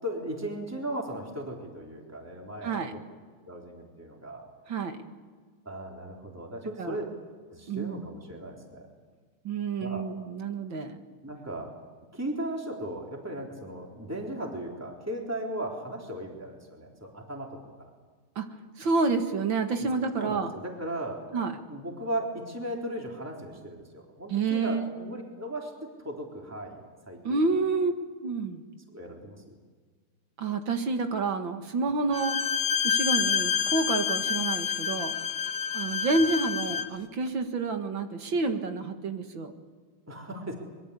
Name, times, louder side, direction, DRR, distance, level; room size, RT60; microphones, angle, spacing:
voice 1, 0.0-2.9 3.5-4.4 5.7-7.0 7.5-8.9 9.8-10.0 11.2-11.7 12.1-17.5 17.8-17.9 19.8-19.9 20.2-21.2 21.7-25.7 26.0-27.4 28.9-29.6 36.2-36.3 40.1-40.5, right 1 dB, 5° right, 0 dB, 3.7 m, -37 dB
voice 2, 7.7-8.1 9.4-11.0 18.4-18.5 18.8-20.5 21.3-21.6 24.3-24.9 27.2-27.9 28.2-28.6 30.4-32.4 32.8-35.2 35.7-39.5, right 3 dB, 65° right, 6 dB, 2.5 m, -29 dB
Bowed string instrument, 32.1-37.0, left 7 dB, 70° left, 0.5 m, -28 dB
24.5 x 22.5 x 8.3 m, 1.5 s
omnidirectional pair, 2.3 m